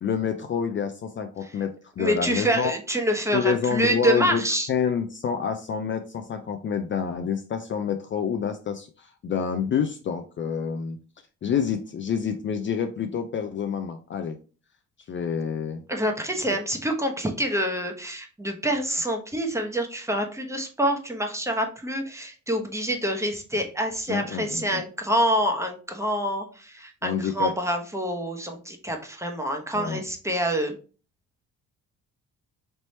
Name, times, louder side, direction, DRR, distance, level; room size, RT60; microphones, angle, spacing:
voice 1, 0.0-2.7 3.3-11.0 11.4-14.4 15.1-15.8 24.1-24.8 27.0-27.5 29.7-30.0, left 7 dB, 40° left, 7 dB, 0.4 m, -28 dB
voice 2, 2.0-4.7 15.9-30.7, right 1 dB, 10° right, 3 dB, 0.9 m, -26 dB
3.3 x 2.9 x 4.1 m, 0.37 s
cardioid pair, 90°, 30 cm